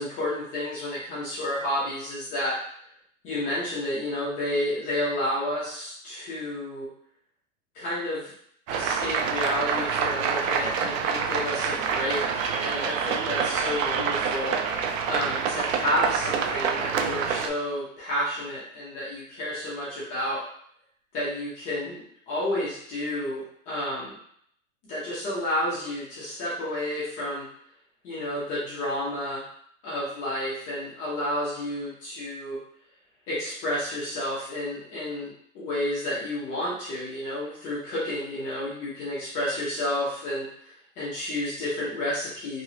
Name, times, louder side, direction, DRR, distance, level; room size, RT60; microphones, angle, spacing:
voice 1, 0.0-2.6 3.2-6.9 7.7-8.3 8.7-14.5 15.1-20.4 21.1-24.2 24.9-27.5 28.0-29.4 29.8-32.6 33.3-42.6, left 1 dB, 20° left, -9 dB, 0.7 m, -31 dB
sound 1, 8.7-17.5, right 6 dB, 85° right, 0.6 m, -27 dB
3.0 x 2.9 x 2.7 m, 0.66 s
supercardioid pair, 175°, 38 cm